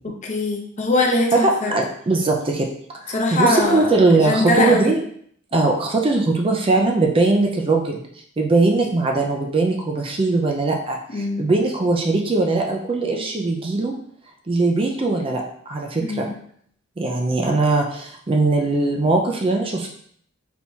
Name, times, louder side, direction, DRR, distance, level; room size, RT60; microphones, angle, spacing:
voice 1, 0.2-1.7 3.1-3.9 4.1-4.9 11.1-11.4 16.0-16.3, left 2 dB, 35° left, 0 dB, 0.7 m, -21 dB
voice 2, 1.3-2.7 3.0-5.0 5.5-8.0 8.4-13.9 14.5-15.4 15.7-16.3 17.0-19.9, right 3 dB, 25° right, 1 dB, 0.4 m, -20 dB
4.4 x 3.4 x 2.8 m, 0.63 s
head